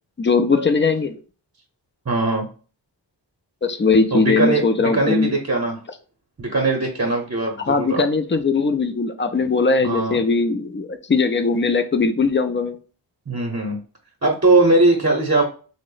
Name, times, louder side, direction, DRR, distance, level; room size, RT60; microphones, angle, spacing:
voice 1, 0.2-1.2 3.6-5.4 7.7-12.8, left 4 dB, 30° left, 8 dB, 0.4 m, -20 dB
voice 2, 2.1-2.5 4.1-5.8 6.4-8.0 9.8-10.2 13.3-13.8 14.2-15.4, right 2 dB, 35° right, -1 dB, 0.8 m, -20 dB
3.5 x 2.1 x 3.8 m, 0.38 s
wide cardioid pair, 85°, 42 cm